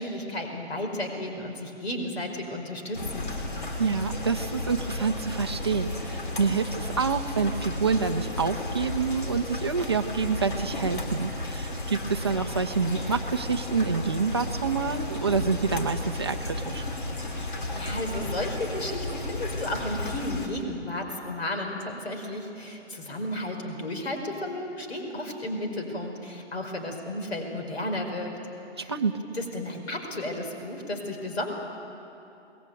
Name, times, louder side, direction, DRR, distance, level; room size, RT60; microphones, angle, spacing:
voice 1, 0.0-3.3 17.2-28.4 28.8-28.9 29.3-31.5, left 1 dB, 65° left, 3 dB, 5.2 m, -33 dB
sound 1, 2.9-20.5, left 2 dB, 45° left, 3.4 m, -33 dB
voice 2, 3.8-16.8 28.9-29.1, right 5 dB, 25° right, 5 dB, 0.7 m, -27 dB
26.5 x 21.0 x 9.1 m, 2.8 s
hypercardioid pair, 170°, 35 cm